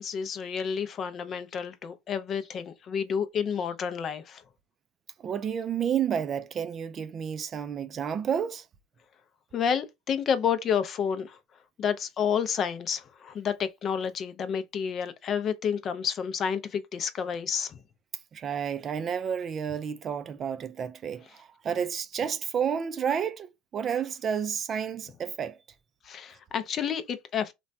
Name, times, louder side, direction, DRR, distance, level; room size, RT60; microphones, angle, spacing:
voice 1, 0.0-4.4 9.5-11.4 11.8-17.8 26.0-27.5, left 7 dB, 40° left, 0.4 m, -30 dB
voice 2, 5.2-8.7 18.3-23.5 23.7-25.6, right 8 dB, 40° right, 0.3 m, -30 dB
3.0 x 2.2 x 2.5 m
supercardioid pair, 95°, 0 cm